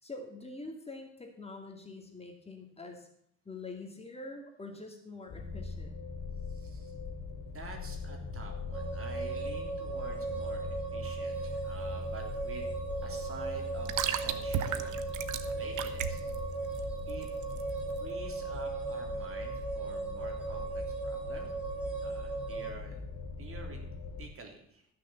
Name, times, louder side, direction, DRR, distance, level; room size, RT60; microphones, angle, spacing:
voice 1, 0.0-3.1 3.5-6.0, left 3 dB, 20° left, 3 dB, 2.2 m, -45 dB
sound 1, 5.3-24.2, left 4 dB, 70° left, 2.6 m, -41 dB
voice 2, 6.5-6.9 7.4-12.7 13.0-15.0 15.5-16.2 17.1-17.3 18.0-21.5 22.0-23.0 23.4-23.8 24.2-24.9, right 3 dB, 45° right, 2 dB, 3.3 m, -48 dB
sound 2, 8.7-22.7, right 4 dB, 5° right, 2.9 m, -38 dB
sound 3, 11.3-18.0, right 9 dB, 80° right, 1.0 m, -37 dB
13.5 x 6.6 x 6.9 m, 0.72 s
cardioid pair, 90°, 30 cm